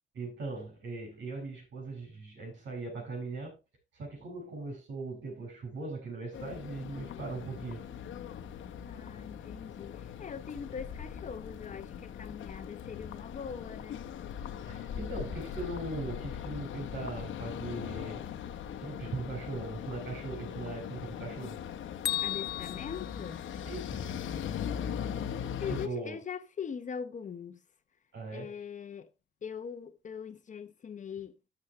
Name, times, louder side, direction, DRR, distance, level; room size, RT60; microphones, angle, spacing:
voice 1, 0.1-3.6 3.9-7.8 14.7-18.2 18.8-21.6 23.7-24.3 25.7-26.2 28.1-28.5, right 3 dB, 70° right, 7.2 m, -39 dB
sound 1, 6.3-25.9, left 8 dB, 80° left, 1.1 m, -40 dB
voice 2, 6.9-7.3 8.9-14.0 22.2-23.4 25.6-27.6 28.3-29.1 29.4-31.5, left 7 dB, 40° left, 0.9 m, -42 dB
Bell, 22.0-24.1, left 13 dB, 55° left, 0.4 m, -36 dB
13.0 x 7.3 x 3.2 m
cardioid pair, 130°, 20 cm